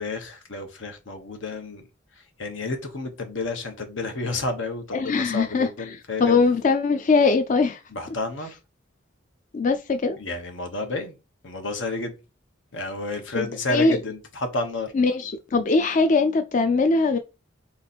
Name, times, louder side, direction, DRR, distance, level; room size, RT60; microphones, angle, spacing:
voice 1, 0.0-1.9 2.1-6.4 7.9-8.6 10.2-11.1 11.4-12.2 12.7-14.9, left 2 dB, 90° left, 1.1 m, -31 dB
voice 2, 4.9-5.7 6.2-7.8 9.5-10.2 13.3-14.0 14.9-17.2, left 4 dB, 45° left, 0.4 m, -21 dB
4.1 x 3.1 x 4.1 m
head